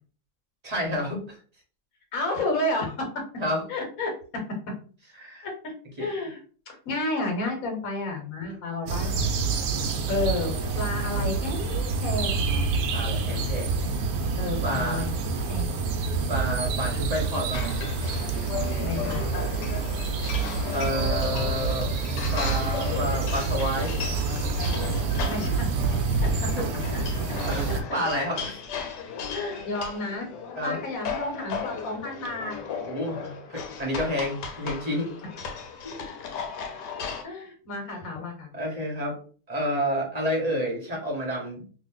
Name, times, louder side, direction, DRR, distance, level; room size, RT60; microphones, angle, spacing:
voice 1, 0.6-1.4 3.4-3.6 5.2-5.5 6.0-6.1 8.4-8.6 12.9-13.8 14.6-15.1 16.3-17.7 20.7-21.9 22.3-23.9 26.5-27.2 27.4-28.6 30.6-30.8 32.8-35.1 35.8-36.0 37.9-38.0 38.5-39.2 39.5-41.6, equal, 30° right, -1 dB, 0.9 m, -30 dB
voice 2, 2.1-3.1 3.7-4.4 5.4-6.4 6.7-9.3 10.1-12.4 14.4-15.8 18.8-19.4 25.2-25.7 26.1-26.5 26.9-27.4 27.7-28.0 29.3-30.3 30.6-32.5 37.0-38.5, left 2 dB, 55° left, 2 dB, 1.5 m, -31 dB
sound 1, 8.9-27.8, right 4 dB, 70° right, 0.8 m, -27 dB
sound 2, 17.5-37.2, left 6 dB, 80° left, 1.3 m, -36 dB
2.9 x 2.5 x 3.7 m, 0.41 s
omnidirectional pair, 1.8 m